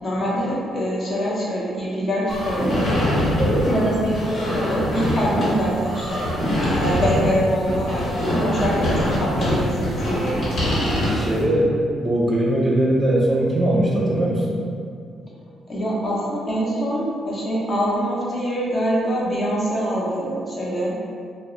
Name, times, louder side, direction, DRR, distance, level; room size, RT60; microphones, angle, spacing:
voice 1, 0.0-2.9 3.7-6.3 6.7-10.8 15.7-21.0, equal, 40° left, -6 dB, 0.7 m, -24 dB
sound 1, 2.3-11.4, equal, 65° left, 1.0 m, -23 dB
voice 2, 11.1-11.7 12.0-14.5, right 1 dB, 20° right, -4 dB, 0.6 m, -20 dB
2.1 x 2.0 x 3.7 m, 2.2 s
cardioid pair, 90°, 0 cm